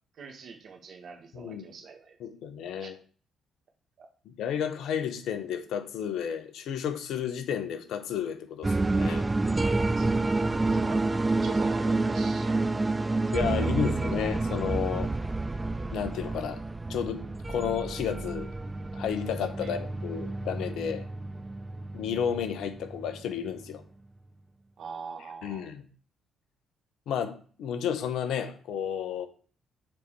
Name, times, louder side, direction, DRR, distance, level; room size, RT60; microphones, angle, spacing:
voice 1, 0.2-2.2 2.8-2.9 4.0-4.1 10.0-10.1 10.3-11.0 11.4-12.8 13.3-13.8 19.6-19.8 24.8-25.7, right 5 dB, 60° right, 4 dB, 1.6 m, -43 dB
voice 2, 1.3-1.7 2.2-3.0 4.2-9.3 13.3-15.1 15.9-16.6 16.9-17.2 17.5-18.5 18.9-21.1 21.9-23.8 25.4-25.8 27.1-29.3, left 8 dB, 70° left, 8 dB, 1.1 m, -32 dB
sound 1, 8.6-23.7, right 2 dB, 20° right, 0.4 m, -29 dB
6.8 x 4.3 x 4.7 m, 0.42 s
hypercardioid pair, 45°, 0 cm